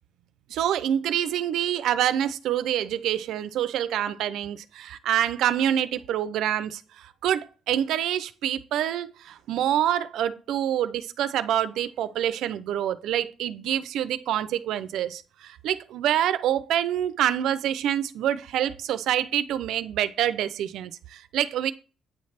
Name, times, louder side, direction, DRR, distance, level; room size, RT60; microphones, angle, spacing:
voice 1, 0.5-21.7, right 11 dB, 80° right, 0.5 m, -26 dB
9.0 x 3.2 x 5.7 m
cardioid pair, 90°, 0 cm